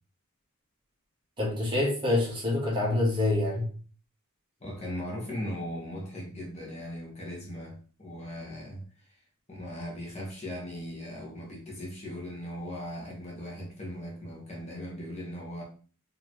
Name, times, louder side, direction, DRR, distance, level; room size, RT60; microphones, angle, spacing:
voice 1, 1.4-3.7, left 2 dB, 20° right, 1.3 m, -26 dB
voice 2, 4.6-9.2 9.5-15.6, equal, 30° left, 1.2 m, -38 dB
4.3 x 2.9 x 3.0 m
head